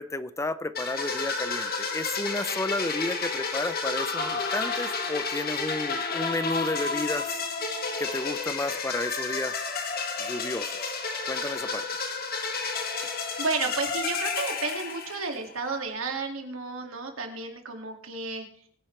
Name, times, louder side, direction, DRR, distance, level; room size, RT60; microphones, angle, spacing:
voice 1, 0.0-7.4 8.0-9.6 10.2-10.9 11.3-11.9, left 2 dB, 15° left, 14 dB, 0.5 m, -32 dB
sound 1, 0.7-15.5, left 4 dB, 50° left, 1.9 m, -31 dB
voice 2, 13.4-18.5, right 4 dB, 85° right, 4 dB, 2.3 m, -32 dB
22.0 x 10.0 x 3.3 m, 0.64 s
head